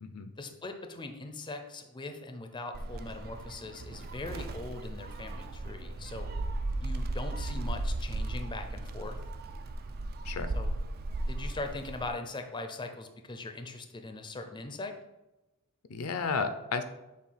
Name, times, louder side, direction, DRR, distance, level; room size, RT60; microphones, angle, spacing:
voice 1, 0.4-6.3 6.8-9.2 10.5-10.7 11.3-14.9, left 2 dB, 20° left, 6 dB, 0.5 m, -40 dB
Gull seagull, 2.7-12.1, right 2 dB, 45° right, 0.4 m, -36 dB
voice 2, 15.9-16.8, left 5 dB, 75° left, 9 dB, 0.5 m, -32 dB
7.2 x 2.4 x 5.6 m, 1.0 s
head